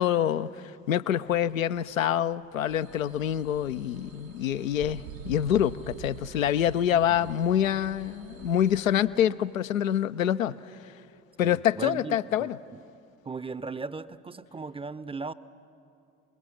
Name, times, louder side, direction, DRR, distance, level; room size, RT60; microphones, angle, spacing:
voice 1, 0.0-10.9 11.4-12.6, left 10 dB, 85° left, 0.5 m, -26 dB
sound 1, 1.3-3.2 4.8-9.2, right 8 dB, 70° right, 0.9 m, -46 dB
sound 2, 2.7-8.9, right 5 dB, 90° right, 1.3 m, -51 dB
voice 2, 11.4-12.8 13.2-15.3, right 4 dB, 15° right, 0.6 m, -37 dB
29.5 x 21.0 x 6.4 m
figure-of-eight pair, 55°, 39 cm